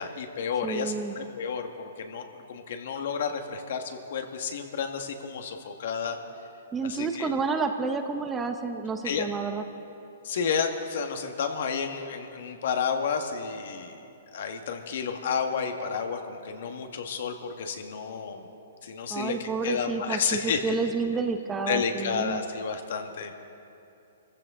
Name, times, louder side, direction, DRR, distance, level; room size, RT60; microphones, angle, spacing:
voice 1, 0.0-6.2 6.8-7.3 9.0-9.3 10.2-14.0 14.3-18.5 18.8-20.8 21.7-23.3, left 6 dB, 65° left, 5 dB, 1.6 m, -31 dB
voice 2, 0.6-1.2 6.7-9.6 19.1-22.4, right 4 dB, 15° right, 6 dB, 0.7 m, -30 dB
23.5 x 15.0 x 3.8 m, 2.7 s
hypercardioid pair, 150°, 0 cm